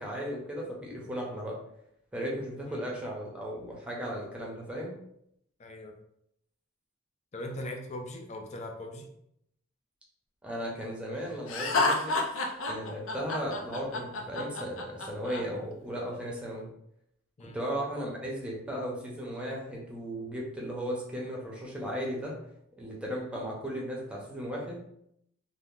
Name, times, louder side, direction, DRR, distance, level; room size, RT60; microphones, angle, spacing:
voice 1, 0.0-1.6 2.1-5.0 10.4-12.2 12.7-16.7 17.4-22.3 22.8-24.8, equal, 5° right, -3 dB, 0.7 m, -36 dB
voice 2, 5.6-6.0 7.3-9.1 17.4-17.6, left 1 dB, 35° left, 3 dB, 0.5 m, -40 dB
Laughter, 11.5-15.4, left 3 dB, 85° left, 0.5 m, -29 dB
2.9 x 2.2 x 3.7 m, 0.75 s
head